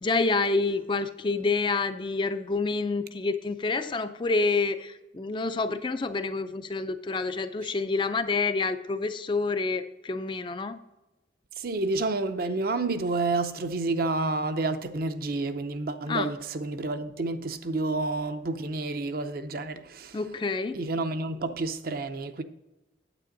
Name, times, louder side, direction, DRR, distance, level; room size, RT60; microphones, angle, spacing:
voice 1, 0.0-10.8 16.1-16.3 20.1-20.8, left 3 dB, 25° left, 0.4 m, -28 dB
voice 2, 11.6-20.2 20.7-22.4, right 3 dB, 50° right, 0.5 m, -29 dB
9.0 x 8.4 x 3.9 m
head